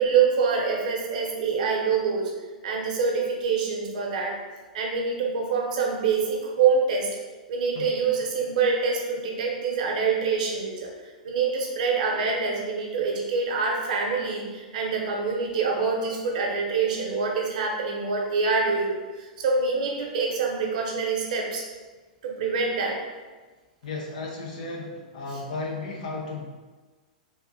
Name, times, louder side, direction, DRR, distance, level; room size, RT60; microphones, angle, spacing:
voice 1, 0.0-2.3 2.6-4.4 4.7-7.1 7.5-10.9 11.2-21.6 22.2-23.0, right 5 dB, 65° right, 0 dB, 0.8 m, -25 dB
voice 2, 23.8-26.5, left 3 dB, 70° left, -1 dB, 0.7 m, -34 dB
3.5 x 2.4 x 2.7 m, 1.3 s
hypercardioid pair, 115°, 4 cm